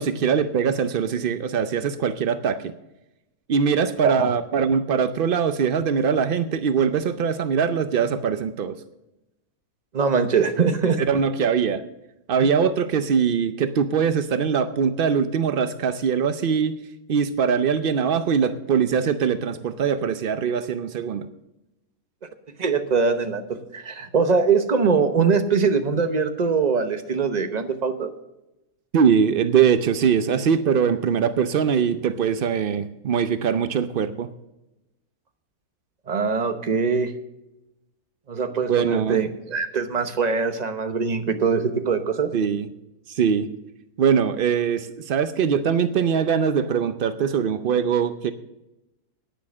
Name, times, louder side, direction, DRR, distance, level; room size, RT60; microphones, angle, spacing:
voice 1, 0.0-2.7 3.5-8.8 11.1-11.8 12.3-16.8 17.1-21.3 28.9-34.3 38.7-39.2 42.3-42.7 43.1-43.5 44.0-48.3, right 7 dB, 85° right, 11 dB, 0.4 m, -22 dB
voice 2, 4.0-4.4 9.9-11.0 22.6-28.1 36.1-37.1 38.3-42.3, right 5 dB, 35° right, 8 dB, 0.8 m, -22 dB
10.5 x 9.8 x 6.2 m, 0.94 s
omnidirectional pair, 1.7 m